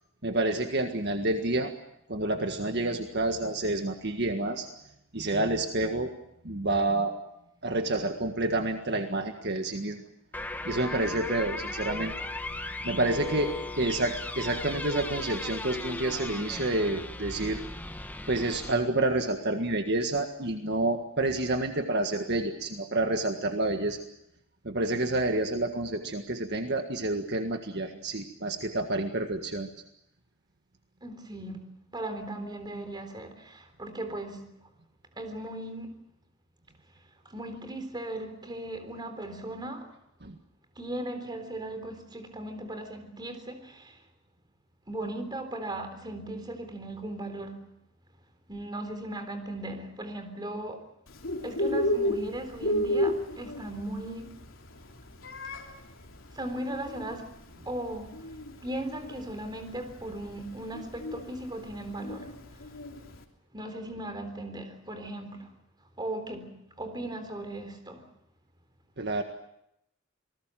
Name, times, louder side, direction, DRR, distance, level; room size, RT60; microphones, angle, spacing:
voice 1, 0.2-1.7 2.1-4.7 5.1-6.1 6.4-7.1 7.6-10.0 10.7-12.1 12.8-17.6 18.3-24.0 24.6-29.7 40.2-40.4 69.0-69.2, right 2 dB, 55° right, 1.7 m, -29 dB
sound 1, 10.3-18.7, left 2 dB, 10° left, 1.5 m, -37 dB
voice 2, 31.0-34.5 35.2-36.0 37.3-39.9 40.8-44.0 44.9-47.6 48.5-50.9 51.4-54.4 56.3-57.3 57.6-58.1 58.6-62.3 63.5-65.5 66.0-68.1, right 1 dB, 20° right, 3.7 m, -37 dB
Bird, 51.1-63.2, left 1 dB, 75° left, 3.2 m, -33 dB
27.0 x 20.0 x 7.6 m
head